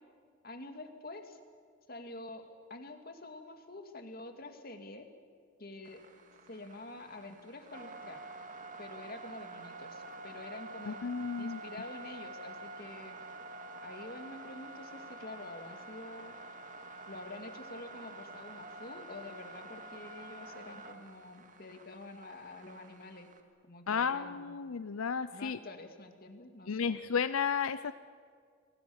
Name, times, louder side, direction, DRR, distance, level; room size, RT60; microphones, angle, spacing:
voice 1, 0.4-1.4 1.9-2.4 2.7-5.1 5.6-6.0 6.5-8.2 8.8-11.1 11.4-13.2 13.8-16.3 17.1-23.3 23.7-24.6 25.3-27.0, left 2 dB, 45° left, 6 dB, 2.4 m, -47 dB
sound 1, 5.8-23.4, right 2 dB, 40° right, 2.0 m, -48 dB
voice 2, 10.9-11.6 23.9-25.6 26.7-27.9, left 6 dB, 85° left, 13 dB, 0.6 m, -33 dB
29.0 x 23.5 x 7.2 m, 2.1 s
head